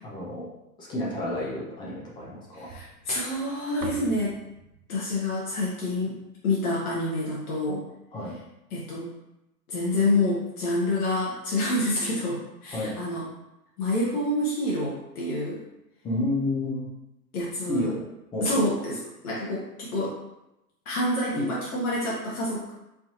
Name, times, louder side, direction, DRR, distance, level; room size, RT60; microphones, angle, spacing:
voice 1, 0.0-0.5 0.8-2.8 8.1-8.4 12.7-13.0 16.0-16.9 17.7-18.1 18.3-18.7 21.4-21.5, left 1 dB, 10° left, -5 dB, 0.3 m, -30 dB
voice 2, 2.5-4.3 4.9-6.2 6.4-7.8 8.7-9.1 9.7-13.2 13.8-15.6 17.3-17.9 18.4-20.2 20.9-22.7, left 1 dB, 65° left, -5 dB, 1.1 m, -27 dB
sound 1, 2.7-7.0, right 4 dB, 85° right, 0.7 m, -43 dB
4.7 x 2.7 x 2.7 m, 0.91 s
hypercardioid pair, 105°, 47 cm